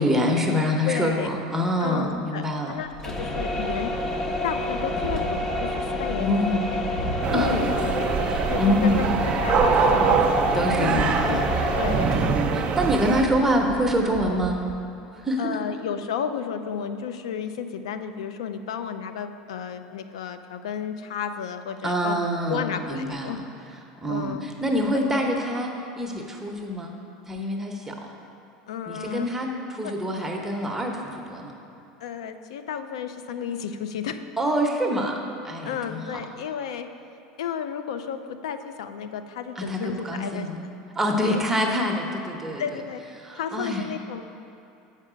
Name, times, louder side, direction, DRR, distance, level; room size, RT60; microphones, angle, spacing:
voice 1, 0.0-2.8 6.2-6.7 7.3-7.5 8.3-9.1 10.5-11.4 12.1-14.6 15.1-15.6 21.8-23.4 24.0-26.9 27.3-28.0 28.9-31.5 34.4-35.2 35.4-36.0 39.6-40.6 41.0-42.6 43.2-43.9, equal, 10° right, 1 dB, 0.8 m, -26 dB
voice 2, 0.8-1.3 1.8-3.9 4.4-6.8 7.3-8.1 8.5-10.2 10.8-11.5 11.7-12.3 15.4-22.2 22.5-23.4 24.1-24.5 28.7-29.3 29.8-29.9 32.0-34.2 35.6-36.9 37.4-40.7 41.2-41.4 42.6-43.0 43.3-44.2, left 7 dB, 85° left, 9 dB, 0.4 m, -32 dB
sound 1, 2.9-14.8, left 1 dB, 20° left, 0.7 m, -29 dB
sound 2, 7.2-13.2, right 5 dB, 40° right, 0.5 m, -24 dB
7.2 x 5.5 x 5.0 m, 2.7 s
supercardioid pair, 105°, 3 cm